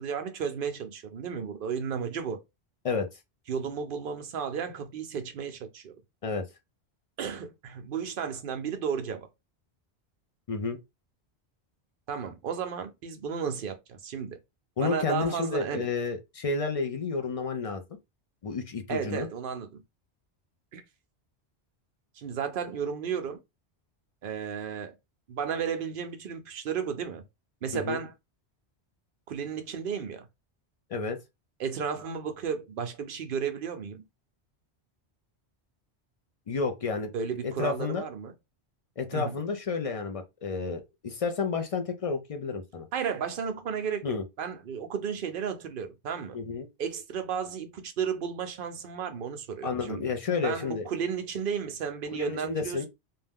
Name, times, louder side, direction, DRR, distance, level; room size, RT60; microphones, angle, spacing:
voice 1, 0.0-2.4 3.5-5.9 7.2-9.3 12.1-14.4 14.8-15.9 18.9-19.8 20.7-20.8 22.1-23.4 24.2-25.0 25.3-27.2 27.6-28.1 29.3-30.3 31.6-34.0 37.1-38.3 39.1-39.4 42.9-46.4 46.8-50.1 50.4-52.9, right 7 dB, 60° right, 0.7 m, -33 dB
voice 2, 10.5-10.8 14.8-17.8 18.4-19.3 27.7-28.0 30.9-31.2 36.5-37.1 37.4-38.0 39.0-42.9 44.0-44.2 46.3-46.7 49.6-50.9 52.1-52.9, left 4 dB, 55° left, 0.4 m, -31 dB
2.6 x 2.2 x 3.4 m
omnidirectional pair, 1.1 m